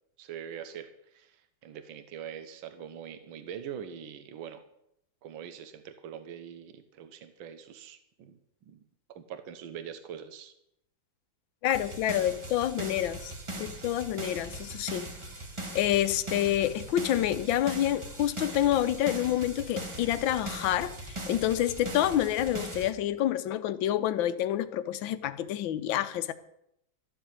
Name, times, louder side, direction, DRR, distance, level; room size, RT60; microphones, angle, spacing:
voice 1, 0.2-4.7 5.2-8.4 8.7-8.8 9.1-10.5, right 8 dB, 80° right, 1.8 m, -43 dB
voice 2, 11.6-15.1 15.7-26.3, left 12 dB, 80° left, 1.5 m, -28 dB
sound 1, 11.7-22.9, right 1 dB, 15° right, 1.2 m, -40 dB
13.0 x 7.1 x 9.0 m
omnidirectional pair, 2.1 m